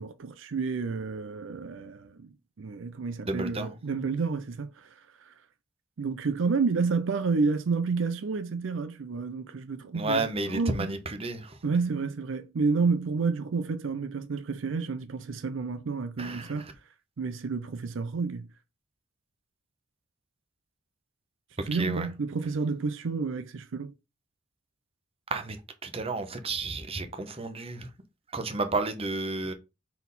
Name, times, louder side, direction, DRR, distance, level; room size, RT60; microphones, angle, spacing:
voice 1, 0.0-5.3 6.0-10.2 10.5-10.9 11.6-16.7 17.2-18.5 21.7-23.9, right 4 dB, 70° right, 0.5 m, -30 dB
voice 2, 3.3-3.7 9.9-11.6 16.2-16.7 21.6-22.1 25.3-25.6 25.8-27.9 28.3-29.5, right 2 dB, 30° right, 1.0 m, -32 dB
4.5 x 4.1 x 5.3 m
head